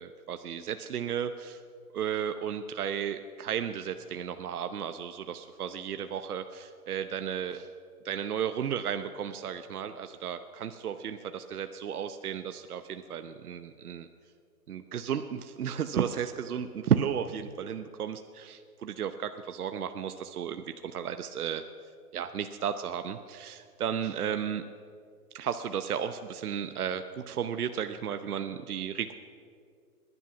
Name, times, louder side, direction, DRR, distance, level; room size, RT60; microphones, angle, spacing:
voice 1, 0.0-1.6 1.9-7.7 8.0-14.1 14.7-21.6 22.1-24.6 25.3-29.1, right 8 dB, 70° right, 8 dB, 0.9 m, -33 dB
21.0 x 11.0 x 6.1 m, 2.2 s
hypercardioid pair, 180°, 46 cm